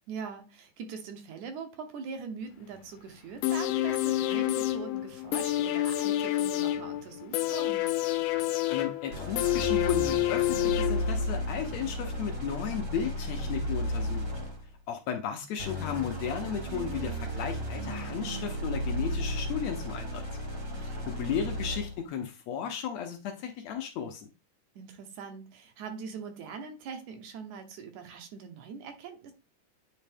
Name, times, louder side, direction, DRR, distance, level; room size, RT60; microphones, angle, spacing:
voice 1, 0.1-7.9 20.7-21.1 24.8-29.3, right 5 dB, 75° right, 2.3 m, -42 dB
sound 1, 3.4-11.4 11.7-11.8, left 15 dB, 90° left, 2.1 m, -28 dB
voice 2, 8.7-14.2 14.9-20.2 21.1-24.3, left 8 dB, 75° left, 1.8 m, -34 dB
sound 2, 9.1-14.7 15.6-22.0, equal, 40° right, 1.1 m, -34 dB
9.1 x 3.1 x 3.4 m
omnidirectional pair, 3.5 m